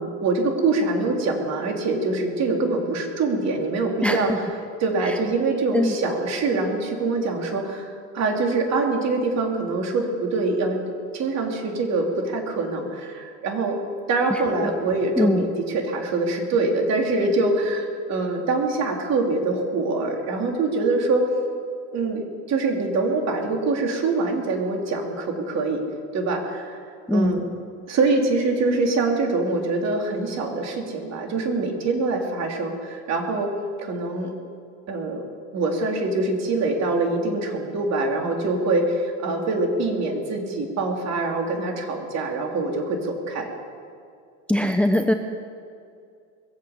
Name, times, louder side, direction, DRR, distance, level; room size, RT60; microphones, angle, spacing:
voice 1, 0.0-4.5 4.8-10.8 11.1-13.8 14.1-21.3 21.9-25.8 26.1-26.8 27.1-27.5 27.9-33.5 33.8-34.3 34.9-35.2 35.5-43.5, right 3 dB, 50° right, 2 dB, 3.3 m, -24 dB
voice 2, 4.0-4.4 5.7-5.9 14.3-14.7 15.2-15.4 27.1-27.4 44.5-45.1, left 1 dB, 5° left, 7 dB, 0.7 m, -21 dB
21.5 x 8.1 x 8.0 m, 2.3 s
supercardioid pair, 95°, 35 cm